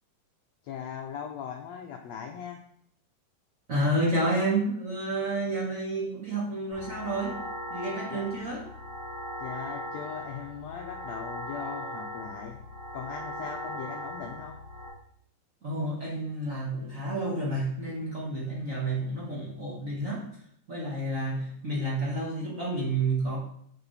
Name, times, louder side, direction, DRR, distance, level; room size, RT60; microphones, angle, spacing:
voice 1, 0.6-2.6 8.1-8.2 9.4-12.6 12.9-14.6, left 8 dB, 85° left, 3 dB, 1.5 m, -39 dB
voice 2, 3.7-7.4 7.7-8.6 15.6-20.2 20.7-23.4, right 2 dB, 55° right, -5 dB, 0.8 m, -30 dB
sound 1, 6.7-14.9, equal, 25° right, 3.3 m, -39 dB
7.0 x 6.5 x 4.1 m, 0.68 s
omnidirectional pair, 3.9 m